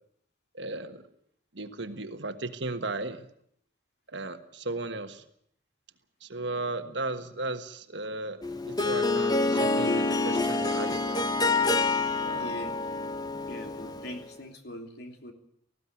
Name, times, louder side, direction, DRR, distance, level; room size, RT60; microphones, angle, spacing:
voice 1, 0.5-1.0 1.5-3.3 4.1-5.2 6.2-11.3 12.2-12.6, right 2 dB, 65° right, 8 dB, 1.5 m, -36 dB
Harp, 8.4-14.2, left 3 dB, 20° left, 1.2 m, -27 dB
voice 2, 12.4-12.7 13.5-15.3, left 1 dB, 60° left, 5 dB, 3.0 m, -41 dB
19.0 x 15.5 x 9.6 m, 0.70 s
head